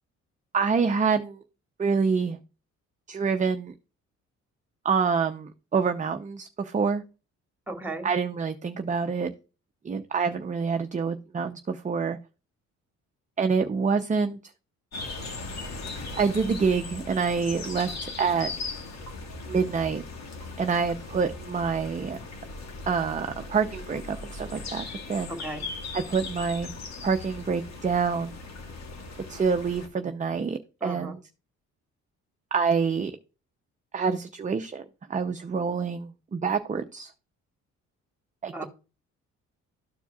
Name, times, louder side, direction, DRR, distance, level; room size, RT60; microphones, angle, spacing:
voice 1, 0.5-1.4 1.8-2.4 3.1-3.7 4.8-7.0 8.0-9.3 9.8-12.2 13.4-14.4 16.2-18.5 19.5-20.0 20.6-22.2 22.9-25.3 25.9-26.7 27.0-28.3 29.3-31.2 32.5-33.1 33.9-34.8 35.1-37.1 38.4-38.6, right 5 dB, 25° right, 6 dB, 0.6 m, -27 dB
voice 2, 7.7-8.1 25.3-25.6 30.8-31.1 38.5-38.7, right 2 dB, 5° right, 5 dB, 2.0 m, -35 dB
sound 1, 14.9-29.9, left 3 dB, 60° left, 2.0 m, -38 dB
13.0 x 4.5 x 2.4 m, 0.32 s
cardioid pair, 90°, 30 cm